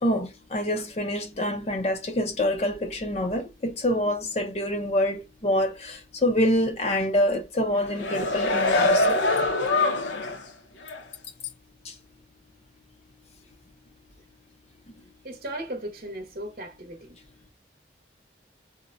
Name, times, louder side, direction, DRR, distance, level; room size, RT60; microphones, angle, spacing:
voice 1, 0.0-9.2 11.8-11.9, left 1 dB, 35° left, 0.5 m, -26 dB
sound 1, 7.7-10.5 10.9-11.0, left 2 dB, 80° left, 0.7 m, -24 dB
voice 2, 15.2-17.1, right 1 dB, 50° right, 0.8 m, -36 dB
4.0 x 2.1 x 2.4 m
head